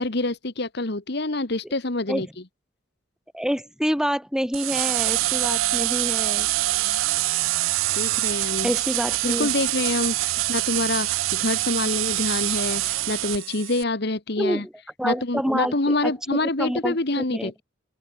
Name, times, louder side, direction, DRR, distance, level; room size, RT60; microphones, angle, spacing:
voice 1, 0.0-2.3 7.9-8.7 9.2-14.6 15.0-17.6, left 2 dB, 55° left, 1.6 m, -26 dB
voice 2, 3.3-6.5 6.9-7.1 8.1-8.2 8.6-9.5 14.4-14.7 15.0-17.5, equal, 5° right, 2.5 m, -27 dB
sound 1, 4.5-13.8, right 17 dB, 85° right, 0.4 m, -25 dB
open air
head